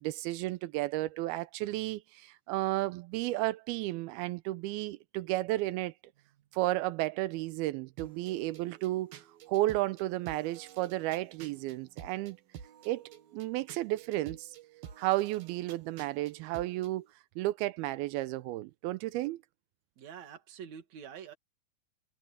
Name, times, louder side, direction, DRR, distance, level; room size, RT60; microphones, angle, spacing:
voice 1, 0.0-5.9 6.5-12.4 12.9-14.6 15.0-17.1 17.4-19.4, right 17 dB, 90° right, 2.5 m, -33 dB
sound 1, 8.0-16.9, right 9 dB, 70° right, 3.5 m, -50 dB
voice 2, 20.0-21.3, right 8 dB, 50° right, 3.0 m, -46 dB
omnidirectional pair, 4.4 m